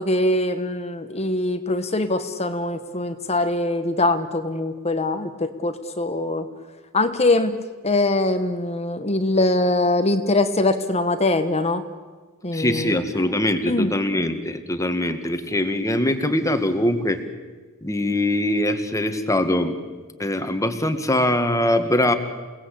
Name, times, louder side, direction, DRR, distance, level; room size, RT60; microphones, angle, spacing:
voice 1, 0.0-6.5 6.9-11.8 12.4-13.0 13.7-13.9, left 2 dB, 30° left, 9 dB, 1.3 m, -22 dB
voice 2, 12.5-17.2 17.8-19.8 20.2-22.1, left 1 dB, 15° left, 7 dB, 1.9 m, -22 dB
29.0 x 19.0 x 8.6 m, 1.4 s
head